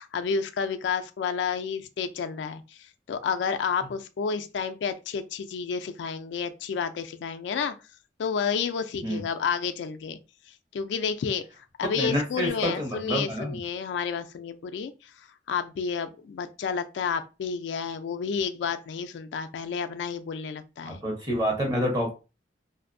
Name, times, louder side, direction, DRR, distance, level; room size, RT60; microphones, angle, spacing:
voice 1, 0.0-7.8 8.2-10.2 10.7-11.4 11.8-21.0, left 6 dB, 80° left, 0.3 m, -30 dB
voice 2, 12.0-13.6 20.8-22.1, equal, 20° right, 0.8 m, -28 dB
2.6 x 2.0 x 2.5 m
head